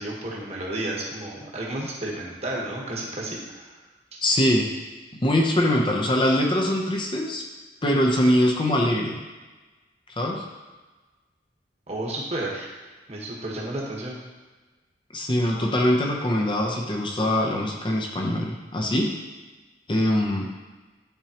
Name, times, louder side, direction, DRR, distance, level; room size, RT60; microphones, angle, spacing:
voice 1, 0.0-3.7 4.1-4.2 11.9-12.7 13.1-14.2, right 1 dB, 35° right, -3 dB, 1.3 m, -32 dB
voice 2, 4.2-4.8 5.2-7.4 7.8-9.2 10.2-10.4 15.1-19.1 19.9-20.5, left 1 dB, 30° left, 0 dB, 0.7 m, -23 dB
10.0 x 4.4 x 2.9 m, 1.3 s
head